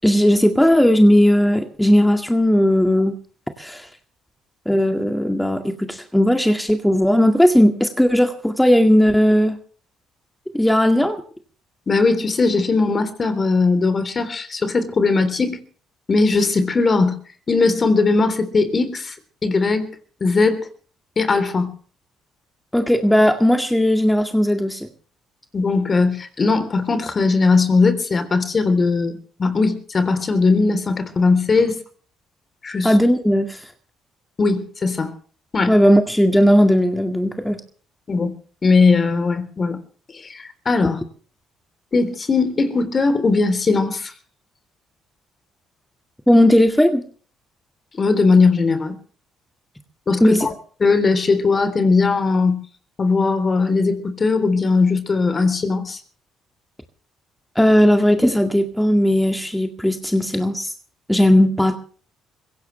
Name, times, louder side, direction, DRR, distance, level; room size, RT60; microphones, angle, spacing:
voice 1, 0.0-3.1 3.6-3.9 4.7-9.6 10.5-11.2 22.7-24.9 32.8-33.7 35.7-37.6 46.3-47.0 50.2-50.5 57.6-60.7 61.1-61.8, equal, 5° left, 5 dB, 2.0 m, -16 dB
voice 2, 11.9-15.6 16.1-17.2 17.5-19.2 19.4-19.9 20.2-20.7 21.2-21.7 25.5-31.8 32.6-32.9 34.4-35.1 35.5-35.8 38.1-38.3 38.6-39.8 40.1-41.0 41.9-44.1 48.0-49.0 50.1-50.5 50.8-52.6 53.0-56.0, left 4 dB, 40° left, 10 dB, 3.5 m, -19 dB
23.5 x 16.5 x 3.3 m, 0.43 s
supercardioid pair, 65°, 0 cm